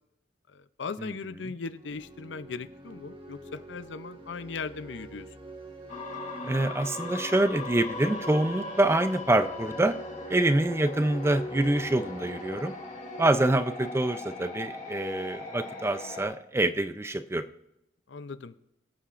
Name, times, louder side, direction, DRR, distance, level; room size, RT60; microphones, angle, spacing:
voice 1, 0.5-5.3 18.1-18.5, left 4 dB, 80° left, 14 dB, 0.5 m, -38 dB
sound 1, 1.6-14.3, right 3 dB, 30° right, 1.4 m, -46 dB
sound 2, 5.9-16.2, left 3 dB, 45° left, 4.3 m, -39 dB
voice 2, 6.4-9.9 10.3-12.7 13.2-17.4, right 1 dB, 15° right, 11 dB, 0.5 m, -26 dB
22.5 x 8.4 x 2.5 m, 0.85 s
head